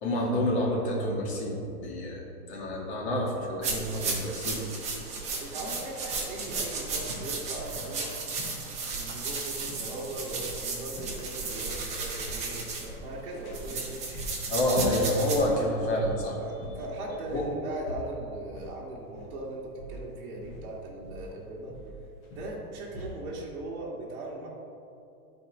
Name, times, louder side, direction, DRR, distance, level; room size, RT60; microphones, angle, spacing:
voice 1, 0.0-4.6 14.5-16.4 17.3-17.4, left 1 dB, 45° left, -2 dB, 2.0 m, -28 dB
sound 1, 3.6-15.4, right 4 dB, 15° right, 0.9 m, -34 dB
voice 2, 5.1-8.2 8.9-14.2 16.4-21.8 22.3-24.5, right 2 dB, 35° right, -5 dB, 1.7 m, -39 dB
sound 2, 6.4-23.3, left 1 dB, 10° left, 0.4 m, -42 dB
11.5 x 4.2 x 4.7 m, 2.7 s
hypercardioid pair, 155°, 46 cm